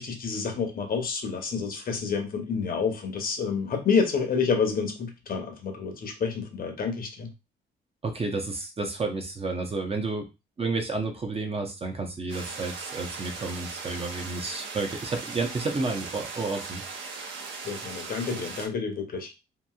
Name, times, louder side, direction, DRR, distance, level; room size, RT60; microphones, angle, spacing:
voice 1, 0.0-7.3 17.6-19.3, left 5 dB, 45° left, 4 dB, 0.8 m, -28 dB
voice 2, 8.0-10.2 10.6-16.8, right 3 dB, 30° right, 4 dB, 0.7 m, -31 dB
sound 1, 12.3-18.7, right 4 dB, 75° right, 0.8 m, -38 dB
2.9 x 2.6 x 2.3 m, 0.26 s
cardioid pair, 90°, 20 cm